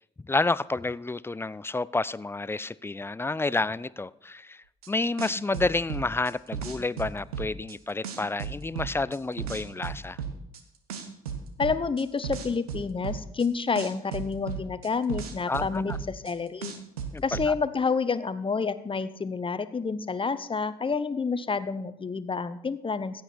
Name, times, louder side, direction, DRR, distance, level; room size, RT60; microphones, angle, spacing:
voice 1, 0.2-10.2 15.5-16.0 17.1-17.5, left 3 dB, 15° left, 20 dB, 0.4 m, -30 dB
sound 1, 4.8-4.9 5.2-7.7 8.0-10.6 10.9-13.5 13.7-16.3 16.6-17.5, right 7 dB, 85° right, 0.9 m, -34 dB
voice 2, 11.6-16.7 17.2-23.2, left 5 dB, 30° left, 13 dB, 0.9 m, -29 dB
15.5 x 9.0 x 4.4 m, 0.80 s
hypercardioid pair, 45°, 18 cm